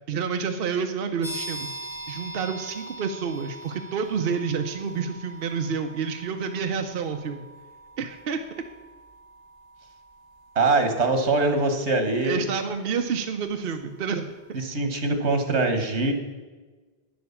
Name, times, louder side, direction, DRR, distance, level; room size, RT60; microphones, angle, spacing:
voice 1, 0.1-1.7 2.1-7.5 8.0-8.4 12.2-14.3, right 6 dB, 60° right, 6 dB, 0.9 m, -29 dB
sound 1, 1.2-13.7, right 1 dB, 25° left, 2.0 m, -43 dB
voice 2, 10.6-12.4 14.5-16.1, right 3 dB, 85° right, 7 dB, 1.7 m, -23 dB
9.6 x 7.7 x 7.1 m, 1.3 s
omnidirectional pair, 1.1 m